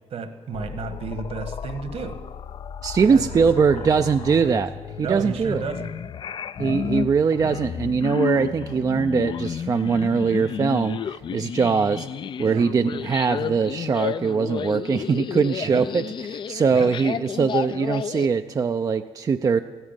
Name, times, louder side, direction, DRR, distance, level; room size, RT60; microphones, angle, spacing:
voice 1, 0.1-2.2 3.1-3.5 3.8-4.1 4.4-4.5 5.0-5.9 12.4-12.6 15.6-15.8 16.7-16.9, right 5 dB, 65° right, 10 dB, 1.5 m, -33 dB
sound 1, 0.5-18.3, left 8 dB, 45° left, 0.4 m, -32 dB
voice 2, 2.8-4.7 5.0-5.6 6.6-12.1 12.4-19.6, right 5 dB, 35° right, 8 dB, 0.4 m, -22 dB
14.5 x 11.0 x 9.0 m, 1.4 s
cardioid pair, 130°, 11 cm